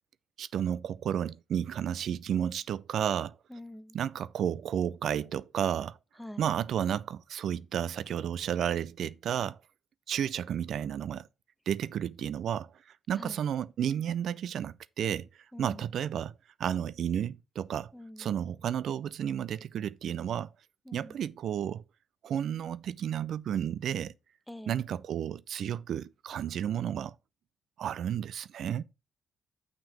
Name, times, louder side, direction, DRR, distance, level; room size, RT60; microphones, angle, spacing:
voice 1, 0.4-3.4 3.9-6.0 6.4-9.6 10.1-11.3 11.7-12.7 13.1-15.3 15.6-16.3 16.6-17.9 18.2-20.5 20.9-21.8 22.2-24.1 24.7-27.1 27.8-28.8, right 9 dB, 65° right, 0.4 m, -32 dB
voice 2, 3.5-4.0 6.2-6.5 13.2-13.4 15.5-15.8 17.9-18.3 20.9-21.2 24.5-24.8, left 1 dB, 5° left, 0.5 m, -45 dB
6.1 x 5.2 x 5.6 m
cardioid pair, 90°, 0 cm